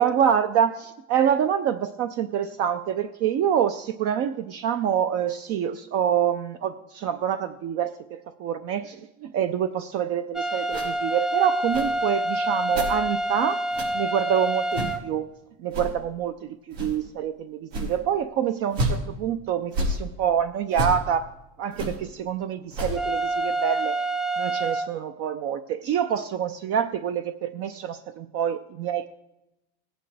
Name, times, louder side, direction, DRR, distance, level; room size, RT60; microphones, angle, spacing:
voice 1, 0.0-13.6 13.9-15.3 15.6-21.3 21.6-24.0 24.4-29.1, right 9 dB, 50° right, 9 dB, 0.6 m, -26 dB
sound 1, 10.3-15.0 22.9-24.9, right 1 dB, ahead, 0.3 m, -27 dB
sound 2, 10.7-10.9 11.7-11.9 12.7-12.9 13.7-13.9 14.7-15.0 15.7-15.9 16.7-17.0 17.7-18.0 18.7-19.0 19.7-20.0 20.7-21.0 21.7-22.0 22.7-23.0, right 1 dB, 85° right, 4.6 m, -28 dB
18.5 x 8.9 x 3.3 m, 0.92 s
cardioid pair, 145°, 32 cm